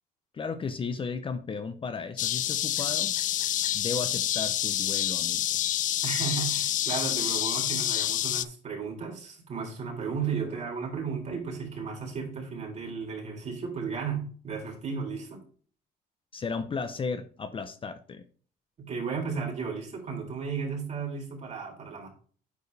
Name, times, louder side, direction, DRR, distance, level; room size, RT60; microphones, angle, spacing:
voice 1, 0.3-3.2 3.7-5.6 16.3-18.3, left 5 dB, 30° left, 10 dB, 0.8 m, -35 dB
sound 1, 2.2-8.5, left 12 dB, 50° left, 0.4 m, -28 dB
voice 2, 6.0-15.4 18.8-22.1, right 5 dB, 40° right, 0 dB, 3.7 m, -34 dB
9.5 x 4.6 x 3.4 m, 0.43 s
cardioid pair, 110°, 17 cm